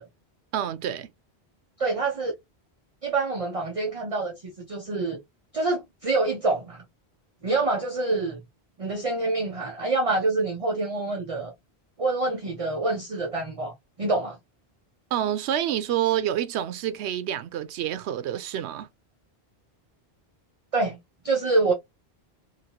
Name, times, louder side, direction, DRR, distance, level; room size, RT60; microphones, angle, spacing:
voice 1, 0.5-1.1 15.1-18.9, right 11 dB, 85° right, 0.8 m, -28 dB
voice 2, 1.8-2.3 3.0-5.2 5.5-6.8 7.4-8.4 8.8-11.5 12.0-14.4 20.7-21.0 21.2-21.7, right 3 dB, 40° right, 0.7 m, -26 dB
2.9 x 2.7 x 2.8 m
omnidirectional pair, 1.1 m